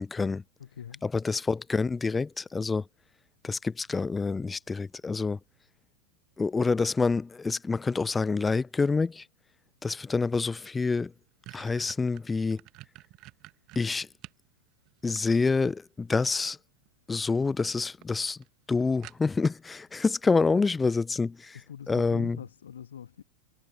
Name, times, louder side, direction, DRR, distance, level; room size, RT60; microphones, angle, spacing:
voice 1, 0.0-0.4 1.0-2.8 3.4-5.4 6.4-9.2 9.8-11.1 11.5-12.6 13.8-14.1 15.0-16.6 17.1-18.4 18.7-21.6 21.9-22.4, left 4 dB, 10° left, 0.4 m, -27 dB
voice 2, 0.6-1.2 21.5-23.2, left 9 dB, 65° left, 1.4 m, -43 dB
sound 1, 11.2-14.5 14.9-15.7 16.8-17.2 17.6-17.7 18.0-18.1 18.4-18.5 19.0-19.6, right 19 dB, 40° right, 1.6 m, -49 dB
figure-of-eight pair, 90°, 0 cm